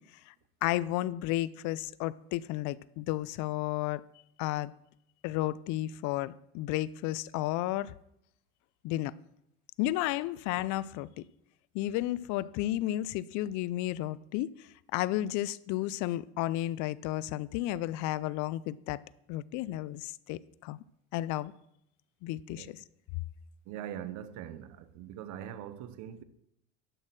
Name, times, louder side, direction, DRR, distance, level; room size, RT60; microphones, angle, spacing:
voice 1, 0.6-4.0 4.4-4.7 5.2-7.9 8.8-9.1 9.8-11.2 11.7-14.5 14.9-19.0 19.3-20.8 21.1-21.5 22.2-22.8, left 15 dB, 60° left, 0.5 m, -32 dB
voice 2, 23.7-26.2, right 10 dB, 60° right, 1.0 m, -42 dB
11.0 x 6.5 x 6.2 m
hypercardioid pair, 85°, 33 cm